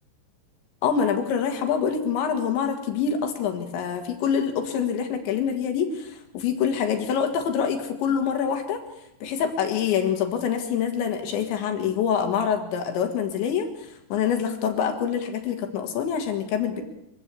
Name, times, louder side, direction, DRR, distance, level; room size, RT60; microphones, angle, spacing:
voice 1, 0.8-8.8 9.2-16.8, left 7 dB, 70° left, 5 dB, 3.9 m, -25 dB
24.5 x 15.5 x 8.4 m, 0.83 s
omnidirectional pair, 5.7 m